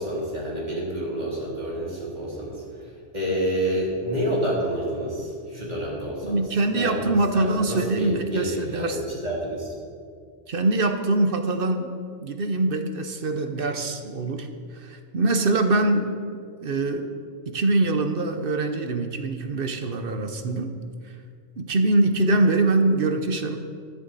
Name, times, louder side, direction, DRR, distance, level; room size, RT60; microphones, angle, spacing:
voice 1, 0.0-6.4 6.7-9.7, equal, 35° right, -5 dB, 3.2 m, -29 dB
voice 2, 6.3-9.0 10.5-11.9 12.2-14.5 14.7-16.1 16.6-17.1 17.5-20.7 21.6-23.6, right 2 dB, 50° right, 7 dB, 1.0 m, -23 dB
22.0 x 7.4 x 4.1 m, 2.2 s
omnidirectional pair, 1.3 m